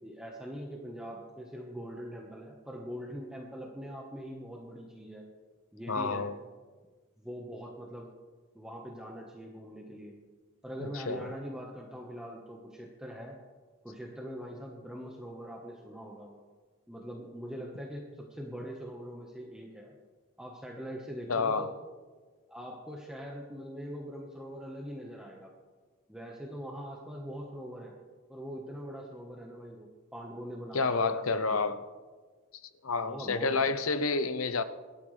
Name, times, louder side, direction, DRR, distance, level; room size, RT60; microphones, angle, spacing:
voice 1, 0.0-5.3 5.7-6.3 7.2-8.1 8.5-10.1 10.6-13.4 13.8-16.3 16.9-19.9 20.4-21.7 22.5-25.5 26.1-27.9 28.3-31.7 33.0-33.7, equal, 5° right, 1.3 m, -42 dB
voice 2, 5.9-6.3 10.8-11.3 21.3-21.7 30.7-31.8 32.8-34.6, left 4 dB, 80° left, 0.9 m, -29 dB
24.0 x 13.0 x 3.4 m
head